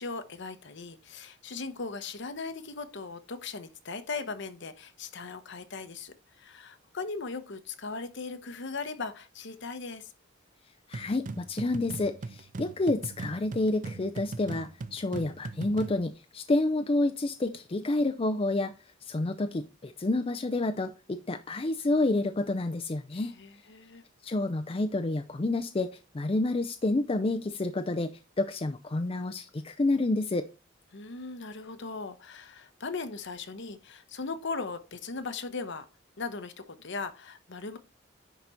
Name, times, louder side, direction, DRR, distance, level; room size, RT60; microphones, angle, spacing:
voice 1, 0.0-10.1 23.1-24.0 30.9-35.9 36.2-37.8, left 4 dB, 60° left, 0.9 m, -38 dB
voice 2, 10.9-18.7 19.1-23.3 24.2-25.9 26.1-30.5, left 2 dB, 30° left, 0.5 m, -29 dB
sound 1, 10.9-16.0, right 3 dB, 40° right, 0.5 m, -40 dB
10.5 x 4.0 x 4.3 m
head